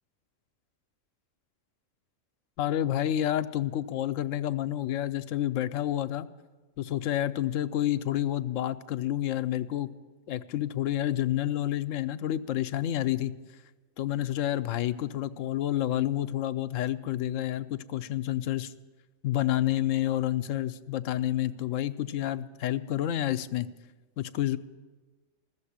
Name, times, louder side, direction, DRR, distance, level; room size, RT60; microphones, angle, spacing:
voice 1, 2.6-6.3 6.8-9.9 10.3-13.3 14.0-18.7 19.2-23.7 24.2-24.6, left 12 dB, 75° left, 12 dB, 0.9 m, -29 dB
14.5 x 7.1 x 9.9 m, 1.3 s
omnidirectional pair, 1.3 m